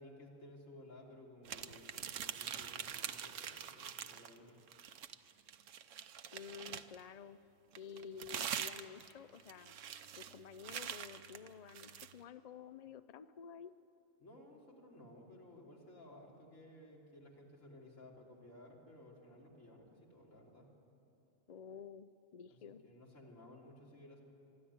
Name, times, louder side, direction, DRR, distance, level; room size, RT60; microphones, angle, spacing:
voice 1, 0.0-4.6 14.2-20.7 22.5-24.2, left 1 dB, 75° left, -3 dB, 3.6 m, -57 dB
sound 1, 1.4-4.4 4.7-7.0 7.7-12.1, right 9 dB, 75° right, 1.1 m, -44 dB
voice 2, 6.3-7.4 7.7-9.8 10.2-13.7 21.5-22.8, left 7 dB, 60° left, 12 dB, 0.4 m, -51 dB
23.0 x 13.0 x 9.6 m, 2.9 s
omnidirectional pair, 1.3 m